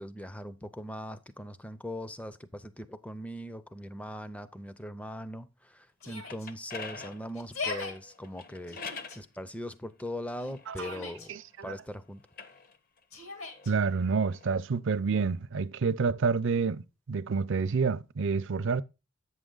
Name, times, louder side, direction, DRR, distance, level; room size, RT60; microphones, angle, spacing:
voice 1, 0.0-8.8 9.1-11.3 11.6-12.2, left 1 dB, 5° left, 0.4 m, -40 dB
Yell, 6.0-6.5 7.3-7.9 8.7-9.2 10.4-11.3 13.1-13.7, left 4 dB, 70° left, 1.7 m, -39 dB
sound 1, 6.0-9.2 10.0-11.7 12.2-14.5, left 4 dB, 40° left, 0.6 m, -46 dB
voice 2, 11.3-11.7 13.7-18.8, right 5 dB, 55° right, 0.4 m, -28 dB
8.4 x 6.3 x 3.7 m
head